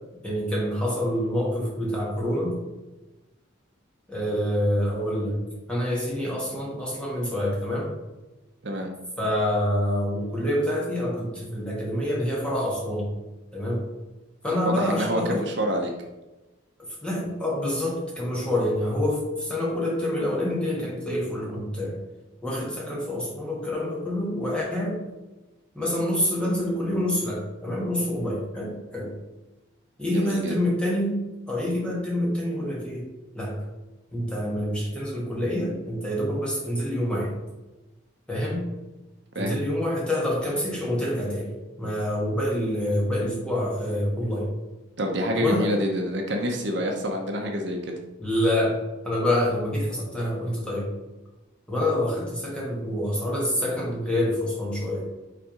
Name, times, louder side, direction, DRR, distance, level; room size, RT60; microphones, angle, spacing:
voice 1, 0.2-2.6 4.1-5.4 5.7-8.0 9.2-13.1 13.5-13.8 14.4-15.4 17.0-22.0 22.4-25.0 25.7-29.1 30.0-31.2 31.5-33.1 33.3-33.5 34.1-37.3 38.3-38.7 39.4-41.5 41.8-44.5 45.4-45.7 48.2-48.7 49.0-50.9 51.7-55.1, left 1 dB, 5° left, -4 dB, 1.6 m, -27 dB
voice 2, 14.6-15.9 30.1-30.5 39.3-39.5 45.0-47.9, equal, 60° right, 2 dB, 0.8 m, -27 dB
5.8 x 3.6 x 5.0 m, 1.1 s
head